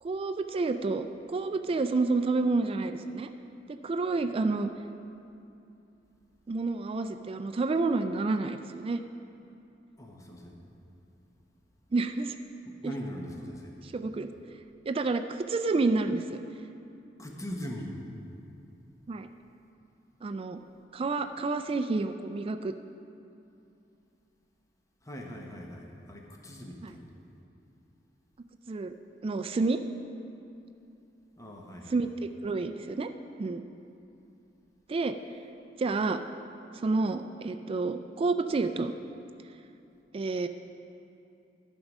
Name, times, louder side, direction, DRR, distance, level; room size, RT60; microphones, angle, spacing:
voice 1, 0.0-3.3 3.7-4.7 6.5-9.0 11.9-12.4 12.8-12.9 13.8-14.3 14.9-16.4 19.1-19.3 20.2-20.6 20.9-22.7 26.8-27.0 28.7-28.9 29.2-29.8 31.9-33.1 33.4-33.6 34.9-35.1 35.8-36.2 36.7-38.9 40.1-40.5, right 3 dB, 30° right, 8 dB, 0.3 m, -29 dB
voice 2, 10.0-10.6 12.7-13.7 17.2-17.9 25.0-27.1 31.4-31.9, equal, 20° left, 0 dB, 1.0 m, -41 dB
13.0 x 5.4 x 6.1 m, 2.7 s
head